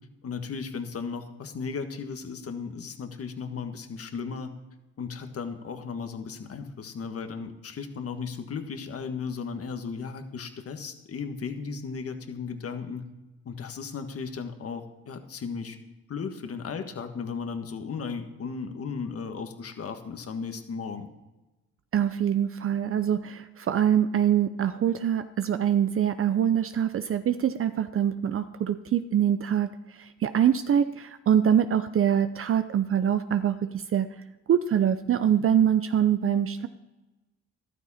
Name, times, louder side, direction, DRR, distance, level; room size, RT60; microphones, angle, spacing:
voice 1, 0.2-4.6 5.0-13.1 13.4-15.8 16.1-21.1, left 5 dB, 50° left, 7 dB, 1.6 m, -35 dB
voice 2, 21.9-29.7 30.0-34.1 34.5-36.7, right 9 dB, 45° right, 10 dB, 0.6 m, -24 dB
13.5 x 12.0 x 4.3 m, 1.1 s
cardioid pair, 90°, 30 cm